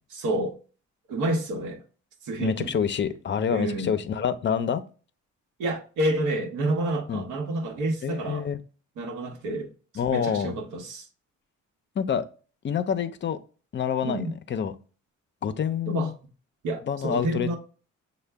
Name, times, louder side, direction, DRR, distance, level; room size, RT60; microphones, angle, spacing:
voice 1, 0.1-0.5 1.1-1.8 2.2-2.7 3.5-3.9 5.6-8.5 9.0-9.7 10.1-11.1 14.0-14.3 15.9-16.1 16.6-17.6, right 1 dB, 85° right, 0.9 m, -29 dB
voice 2, 2.4-4.8 7.1-7.3 8.0-8.6 10.0-10.6 12.0-12.3 12.6-13.4 13.7-14.2 14.5-14.7 15.4-16.1 16.9-17.5, left 7 dB, 40° left, 0.5 m, -27 dB
6.4 x 2.2 x 3.4 m
cardioid pair, 90°, 30 cm